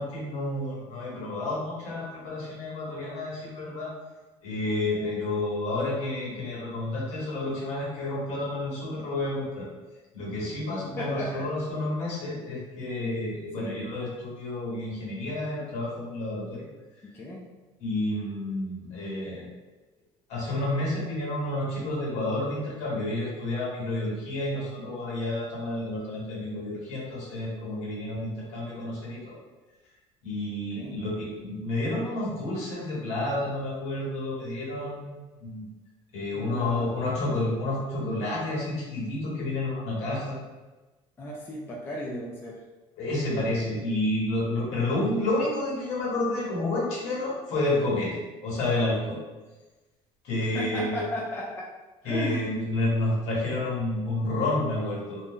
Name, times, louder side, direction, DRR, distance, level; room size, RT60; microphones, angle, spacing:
voice 1, 0.0-3.9 4.4-9.7 10.1-16.6 17.8-19.5 20.3-29.3 30.2-35.1 35.4-35.6 36.1-40.4 43.0-49.2 50.2-51.0 52.0-55.2, left 2 dB, 60° left, -5 dB, 1.2 m, -30 dB
voice 2, 11.0-11.5 13.6-13.8 17.1-17.5 30.7-31.1 36.3-36.9 41.2-42.6 50.4-51.7 52.0-52.5 52.8-52.9, left 1 dB, 15° left, -4 dB, 0.3 m, -35 dB
2.5 x 2.2 x 3.6 m, 1.2 s
cardioid pair, 165°, 13 cm